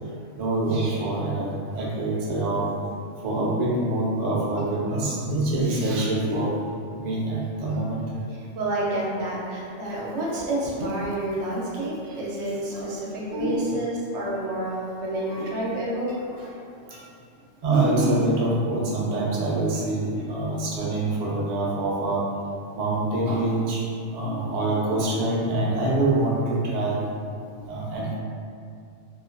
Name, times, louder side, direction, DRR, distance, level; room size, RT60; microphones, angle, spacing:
voice 1, 0.4-2.7 3.2-6.5 7.0-8.0 12.7-12.9 13.3-13.8 15.3-15.5 16.3-16.5 17.6-22.2 22.7-23.8 24.1-27.0 27.7-28.1, right 2 dB, 85° right, -5 dB, 0.3 m, -25 dB
voice 2, 8.6-16.1 16.9-17.0, right 1 dB, 70° right, -5 dB, 0.8 m, -29 dB
2.4 x 2.2 x 2.5 m, 2.4 s
omnidirectional pair, 1.3 m